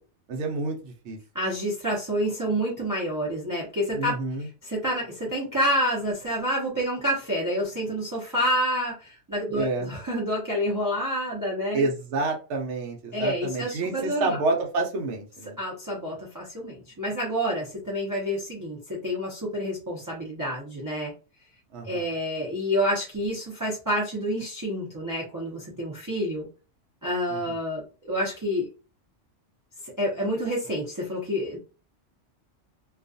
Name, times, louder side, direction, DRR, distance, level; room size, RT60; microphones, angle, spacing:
voice 1, 0.3-1.2 3.9-4.5 9.5-10.0 11.7-15.6 21.7-22.0 27.3-27.6, right 3 dB, 70° right, 1 dB, 0.9 m, -29 dB
voice 2, 1.3-11.9 13.1-14.4 15.6-21.1 21.8-26.5 27.0-28.7 29.8-31.6, equal, 25° right, -5 dB, 0.5 m, -28 dB
2.4 x 2.3 x 2.6 m, 0.34 s
omnidirectional pair, 1.4 m